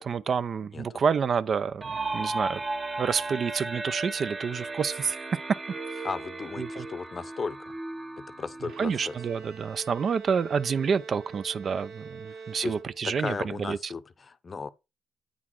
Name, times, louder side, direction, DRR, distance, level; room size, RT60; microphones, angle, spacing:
voice 1, 0.0-2.6 3.0-5.2 6.6-6.9 8.8-13.8, right 6 dB, 50° right, 0.4 m, -28 dB
sound 1, 1.8-9.4, right 2 dB, 30° right, 0.9 m, -35 dB
voice 2, 6.0-7.8 8.2-9.2 12.3-12.7 13.0-14.7, left 4 dB, 35° left, 0.6 m, -36 dB
Bowed string instrument, 8.6-13.3, right 5 dB, 80° right, 1.4 m, -44 dB
8.5 x 3.9 x 4.5 m
cardioid pair, 90°, 0 cm